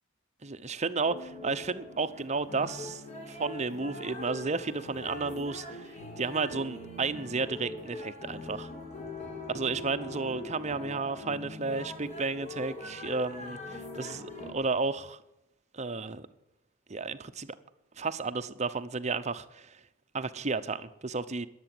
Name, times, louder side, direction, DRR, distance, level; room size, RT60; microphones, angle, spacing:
voice 1, 0.4-8.7 9.5-15.2 15.7-16.3 16.9-17.6 18.0-19.8 20.1-21.5, right 4 dB, 35° right, 0.9 m, -33 dB
sound 1, 1.1-14.5, left 2 dB, 35° left, 4.1 m, -42 dB
21.0 x 8.3 x 7.9 m
head